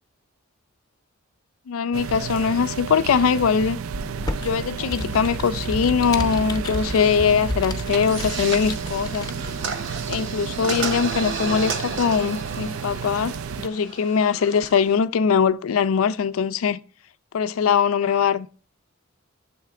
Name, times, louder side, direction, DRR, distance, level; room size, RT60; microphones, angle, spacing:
voice 1, 1.7-3.8 4.4-9.3 10.1-16.8 17.3-18.5, left 6 dB, 85° left, 0.4 m, -21 dB
sound 1, 1.9-13.7, right 6 dB, 85° right, 0.4 m, -32 dB
Computer keyboard, 3.9-9.7, left 1 dB, 20° left, 0.6 m, -32 dB
sound 2, 7.9-15.0, right 5 dB, 60° right, 0.7 m, -33 dB
7.7 x 3.3 x 4.7 m
head